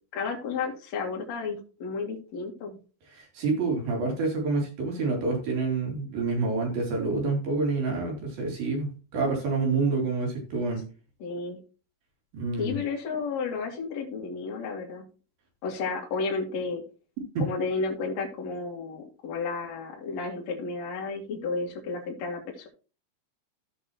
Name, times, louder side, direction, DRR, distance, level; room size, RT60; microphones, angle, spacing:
voice 1, 0.1-2.8 11.2-11.6 12.6-15.0 15.6-16.8 17.4-22.4, left 4 dB, 50° left, 0 dB, 2.6 m, -32 dB
voice 2, 3.1-10.8 12.3-12.8 17.4-17.5, right 3 dB, 55° right, 1 dB, 4.3 m, -28 dB
16.0 x 5.4 x 2.9 m, 0.34 s
omnidirectional pair, 5.2 m